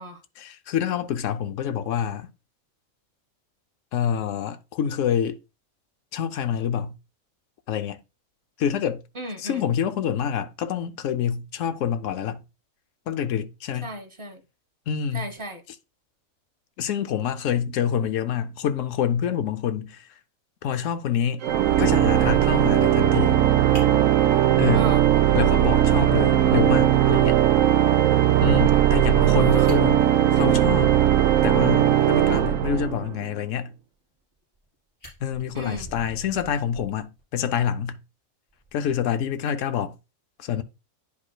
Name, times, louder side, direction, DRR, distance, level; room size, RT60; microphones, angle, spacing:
voice 1, 0.4-2.3 3.9-5.4 6.1-7.0 7.7-8.0 8.6-9.0 9.4-12.4 13.1-13.9 14.9-15.3 16.8-20.1 20.6-21.4 21.8-23.4 24.6-24.9 25.3-27.4 28.4-30.0 30.4-31.0 31.4-33.7 35.2-38.0 38.7-39.9 40.4-40.6, left 8 dB, 70° left, 0.9 m, -27 dB
voice 2, 9.2-9.7 13.8-14.4 15.1-15.6 24.7-25.0 29.2-29.8 35.5-35.9, right 1 dB, 25° right, 0.8 m, -34 dB
Organ, 21.4-33.2, right 11 dB, 70° right, 0.9 m, -19 dB
Fire, 23.7-25.7 26.0-26.1 26.5-26.6 26.9-27.0 29.2-29.3 29.6-31.3 34.1-34.6 35.0-37.2 38.5-38.7, right 1 dB, 50° left, 4.3 m, -44 dB
10.5 x 4.8 x 2.2 m
omnidirectional pair, 1.5 m